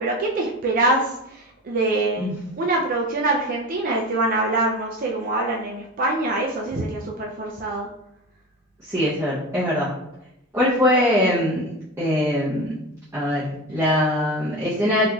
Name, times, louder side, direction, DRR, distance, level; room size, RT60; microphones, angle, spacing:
voice 1, 0.0-2.3 2.6-7.9, right 2 dB, 45° right, -1 dB, 0.4 m, -24 dB
voice 2, 8.8-9.9 10.5-11.7 12.0-12.8 13.1-15.1, left 1 dB, 15° right, -10 dB, 0.8 m, -22 dB
4.0 x 2.9 x 2.3 m, 0.83 s
head